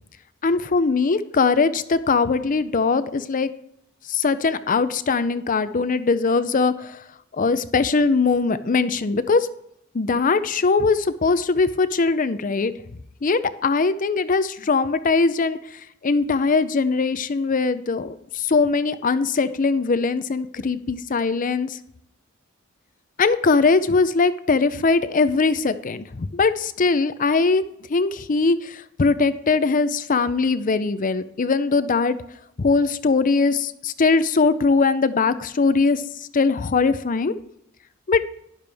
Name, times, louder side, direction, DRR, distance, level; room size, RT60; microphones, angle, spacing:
voice 1, 0.4-3.5 4.1-7.0 7.3-9.5 9.9-12.7 13.2-15.6 16.0-21.8 23.2-27.6 27.9-32.2 32.6-36.0 36.3-37.3 38.1-38.2, left 4 dB, 40° left, 13 dB, 0.5 m, -21 dB
12.0 x 10.5 x 3.4 m, 0.76 s
head